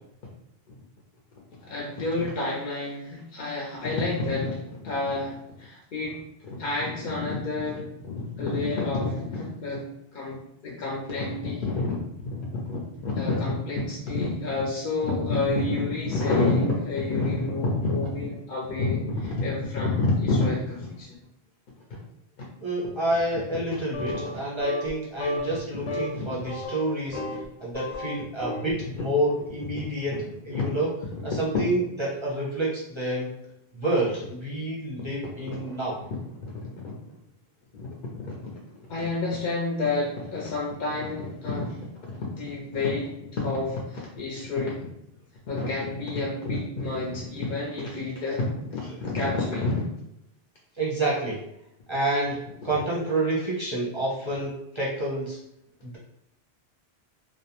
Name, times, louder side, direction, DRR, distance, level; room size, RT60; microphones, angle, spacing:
voice 1, 1.6-6.2 6.4-9.8 10.1-12.0 12.4-21.1 26.1-26.5 27.1-27.2 30.5-30.6 35.6-35.8 36.5-36.9 37.7-37.9 38.2-38.6 38.9-41.8 42.1-44.9 45.5-49.8, left 3 dB, 60° left, -3 dB, 0.6 m, -29 dB
voice 2, 22.6-27.2 27.6-30.9 31.2-33.3 33.7-36.0 50.7-51.4 51.9-55.4 55.8-56.0, right 1 dB, 35° right, -5 dB, 0.5 m, -28 dB
sound 1, 23.9-24.4 24.6-24.9 25.2-25.6 25.9-26.1 26.5-27.5 27.7-28.7, left 1 dB, 90° left, 0.9 m, -32 dB
2.4 x 2.1 x 2.8 m, 0.80 s
omnidirectional pair, 1.1 m